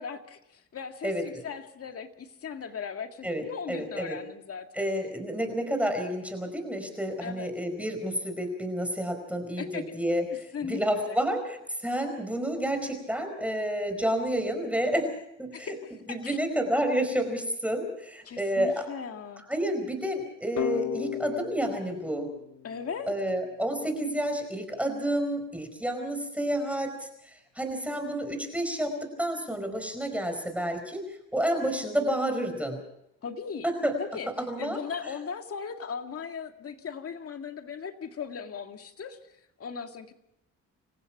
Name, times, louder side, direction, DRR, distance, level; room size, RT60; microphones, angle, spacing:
voice 1, 0.0-4.9 7.2-7.5 9.6-9.9 10.5-10.8 11.1-11.2 15.5-16.4 18.2-19.4 22.6-23.1 33.2-33.7 34.0-34.3 34.6-39.2 39.6-40.1, left 6 dB, 50° left, 6 dB, 2.1 m, -38 dB
voice 2, 1.0-1.4 3.2-4.2 4.7-10.2 10.7-15.1 15.4-15.7 16.1-18.9 19.5-22.3 23.1-31.1 31.3-32.8 33.6-33.9 34.4-35.1, right 1 dB, 5° right, 6 dB, 4.8 m, -30 dB
sound 1, 20.6-23.4, left 15 dB, 65° left, 1.0 m, -35 dB
28.0 x 15.5 x 6.0 m, 0.82 s
cardioid pair, 90°, 30 cm